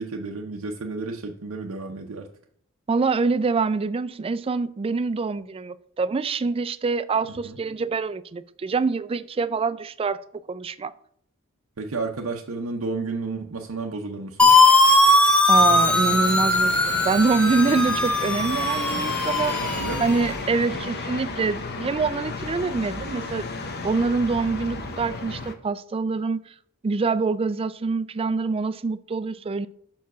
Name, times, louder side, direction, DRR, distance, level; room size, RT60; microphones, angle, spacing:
voice 1, 0.0-2.3 7.4-7.6 11.8-14.6 19.6-20.1 20.7-20.9 22.7-22.8 24.7-24.9, right 3 dB, 70° right, 0.6 m, -32 dB
voice 2, 2.9-10.2 10.5-10.9 15.5-19.6 20.0-23.5 23.8-26.5 26.8-29.7, right 4 dB, 25° right, 0.3 m, -25 dB
sound 1, 14.4-20.2, left 2 dB, 5° left, 0.7 m, -19 dB
sound 2, 15.5-25.5, left 3 dB, 50° left, 0.8 m, -33 dB
5.7 x 4.6 x 6.0 m
head